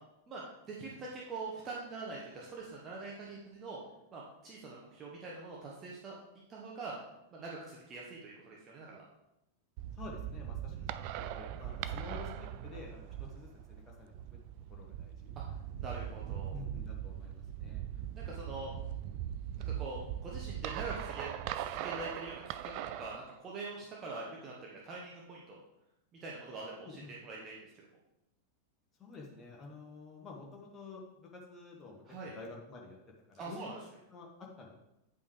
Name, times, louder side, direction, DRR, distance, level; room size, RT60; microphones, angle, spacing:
voice 1, 0.3-3.8 4.1-6.2 6.5-6.9 7.3-9.0 10.7-10.9 15.3-16.6 18.1-18.7 19.7-22.7 23.0-25.6 26.2-27.9 32.1-32.3 33.4-33.8, right 3 dB, 25° right, -3 dB, 1.2 m, -44 dB
sound 1, 9.8-23.2, right 11 dB, 45° right, 0.3 m, -40 dB
voice 2, 9.9-14.1 14.7-15.3 16.5-17.8 26.8-27.1 29.0-33.0 33.3-34.7, left 3 dB, 20° left, -2 dB, 1.4 m, -50 dB
9.0 x 5.3 x 3.3 m, 0.88 s
figure-of-eight pair, 90°, 0 cm